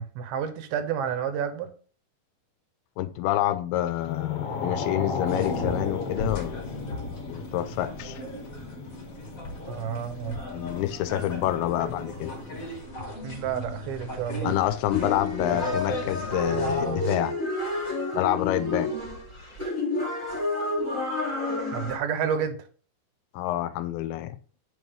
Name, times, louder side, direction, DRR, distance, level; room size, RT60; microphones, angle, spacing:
voice 1, 0.0-1.7 9.7-10.4 13.2-14.5 21.7-22.6, right 8 dB, 80° right, 2.5 m, -30 dB
voice 2, 3.0-6.7 7.3-8.2 10.5-12.4 14.4-17.4 18.1-18.9 23.3-24.4, left 13 dB, 80° left, 2.4 m, -28 dB
sound 1, 3.9-12.7, left 4 dB, 65° left, 1.5 m, -36 dB
sound 2, 5.2-17.0, left 1 dB, 40° left, 1.2 m, -36 dB
sound 3, 14.9-22.0, left 2 dB, 10° left, 1.9 m, -30 dB
8.9 x 6.2 x 3.5 m
omnidirectional pair, 4.6 m